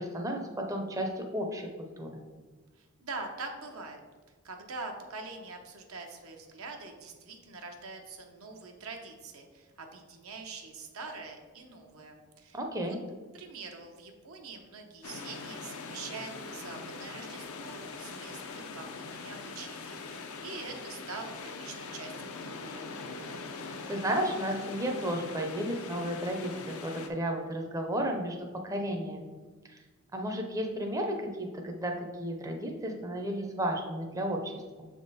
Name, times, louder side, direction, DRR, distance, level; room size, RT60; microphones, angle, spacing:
voice 1, 0.0-2.2 12.5-13.0 23.9-29.4 29.7-29.8 30.1-34.9, right 1 dB, 15° right, 2 dB, 0.5 m, -33 dB
voice 2, 2.8-4.0 4.4-13.0 13.3-22.9, right 3 dB, 80° right, 3 dB, 0.8 m, -44 dB
sound 1, 15.0-27.1, left 4 dB, 90° left, 0.6 m, -42 dB
6.7 x 3.6 x 4.0 m, 1.4 s
head